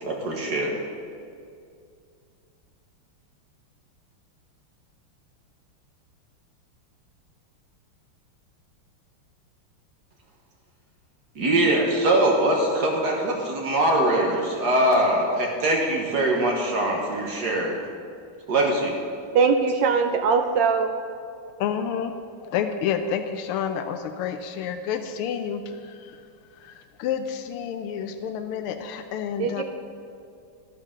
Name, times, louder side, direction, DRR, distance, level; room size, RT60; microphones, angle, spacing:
voice 1, 0.0-0.7 11.4-17.8 18.5-19.0, right 1 dB, 50° right, 0 dB, 1.7 m, -22 dB
voice 2, 19.3-20.9 29.4-29.6, right 5 dB, 70° right, 5 dB, 1.2 m, -21 dB
voice 3, 21.6-22.1 22.4-26.2 26.5-29.6, left 8 dB, 85° left, 8 dB, 1.5 m, -29 dB
12.0 x 12.0 x 3.7 m, 2.4 s
omnidirectional pair, 2.4 m